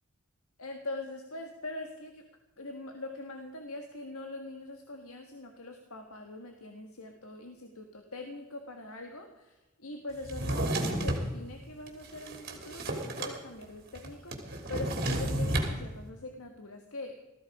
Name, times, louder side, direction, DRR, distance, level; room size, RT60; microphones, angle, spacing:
voice 1, 0.6-2.2 2.6-17.2, left 2 dB, 80° left, 4 dB, 1.7 m, -42 dB
Drawer open or close, 10.2-11.3 11.9-13.4 13.6-13.7 13.9-15.7, right 1 dB, 45° right, 3.0 m, -31 dB
18.5 x 14.5 x 5.0 m, 1.1 s
head